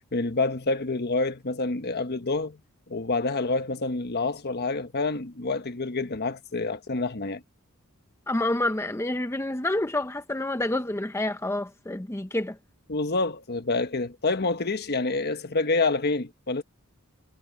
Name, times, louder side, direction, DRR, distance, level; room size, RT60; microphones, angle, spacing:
voice 1, 0.1-2.6 2.9-7.4 12.9-16.6, left 3 dB, 50° left, 1.2 m, -27 dB
voice 2, 8.3-12.6, left 1 dB, 10° left, 0.8 m, -28 dB
head